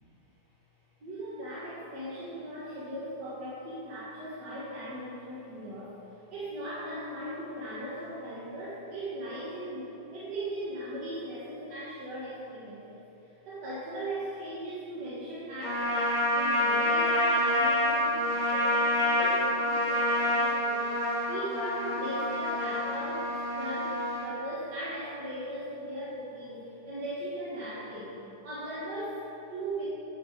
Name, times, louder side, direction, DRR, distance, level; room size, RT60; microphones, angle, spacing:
voice 1, 1.0-21.0 21.3-28.2 28.4-29.9, right 1 dB, 80° right, -9 dB, 2.2 m, -38 dB
Trumpet, 15.6-24.3, left 1 dB, 55° left, 2.4 m, -27 dB
8.5 x 6.7 x 5.2 m, 3.0 s
omnidirectional pair, 1.8 m